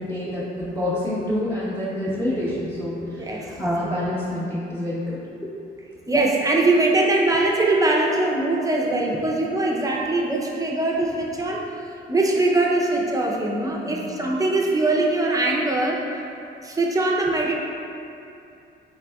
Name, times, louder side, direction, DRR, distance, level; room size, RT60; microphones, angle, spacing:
voice 1, 0.0-5.2 13.9-14.1, left 1 dB, 10° left, -13 dB, 0.9 m, -27 dB
voice 2, 6.1-11.6 12.1-16.0 16.6-17.6, right 2 dB, 15° right, -2 dB, 0.5 m, -22 dB
3.9 x 3.5 x 2.3 m, 2.7 s
cardioid pair, 90°, 20 cm